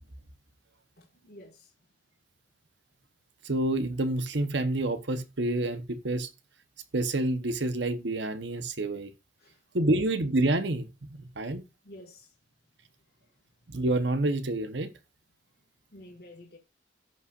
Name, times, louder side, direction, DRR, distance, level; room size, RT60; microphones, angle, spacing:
voice 1, 1.0-1.7 9.4-10.0 11.8-12.3 13.2-13.3 15.9-16.6, left 1 dB, 55° left, 1.8 m, -50 dB
voice 2, 3.4-6.3 6.9-9.1 9.7-11.6 13.7-14.9, right 2 dB, 65° right, 1.0 m, -28 dB
16.5 x 5.6 x 2.5 m
head